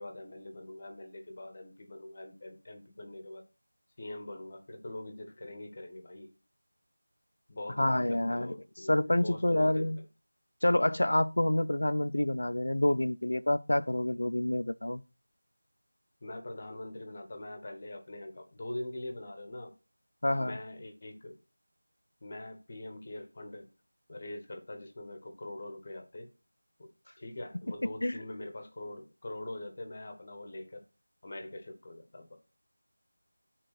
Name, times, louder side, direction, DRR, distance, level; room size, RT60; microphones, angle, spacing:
voice 1, 0.0-3.4 4.0-6.3 7.5-9.9 16.2-19.7 20.4-21.4 22.2-23.7 24.1-26.3 26.8-26.9 27.2-30.8 31.2-32.4, left 1 dB, 35° left, 1.1 m, -43 dB
voice 2, 7.8-10.0 10.6-15.0 20.2-20.6 27.8-28.2, left 1 dB, 65° left, 0.5 m, -28 dB
5.3 x 3.8 x 5.8 m
figure-of-eight pair, 170°, 0 cm